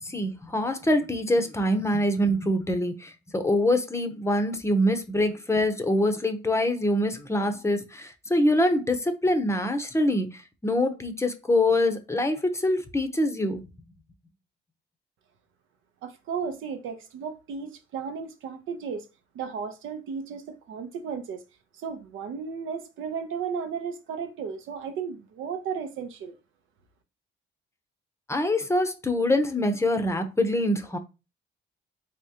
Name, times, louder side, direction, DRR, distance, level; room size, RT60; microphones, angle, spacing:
voice 1, 0.0-13.6 28.3-31.0, left 1 dB, 15° left, 0.6 m, -25 dB
voice 2, 16.0-19.0 19.3-21.4 21.8-26.4, right 6 dB, 80° right, 0.7 m, -34 dB
3.5 x 3.3 x 2.8 m
cardioid pair, 90°, 20 cm